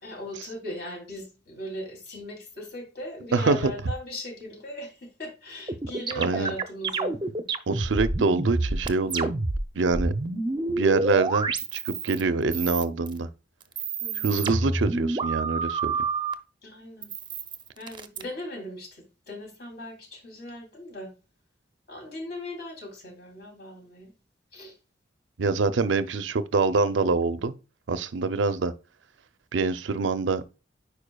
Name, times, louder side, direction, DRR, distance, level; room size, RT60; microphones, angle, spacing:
voice 1, 0.0-7.2 14.0-14.3 16.6-17.1 17.8-21.1 21.9-24.1 24.5-24.7, left 1 dB, 60° left, 3.0 m, -38 dB
voice 2, 3.3-3.7 6.2-6.5 7.7-9.3 9.7-10.1 10.7-13.3 14.2-15.9 25.4-27.5 27.9-28.7 29.5-30.4, right 4 dB, 90° right, 0.5 m, -25 dB
sound 1, 5.7-9.6 9.9-12.2 12.5-13.2 13.6-16.3 17.0-18.2, right 3 dB, 25° right, 0.5 m, -28 dB
9.9 x 4.7 x 2.3 m
head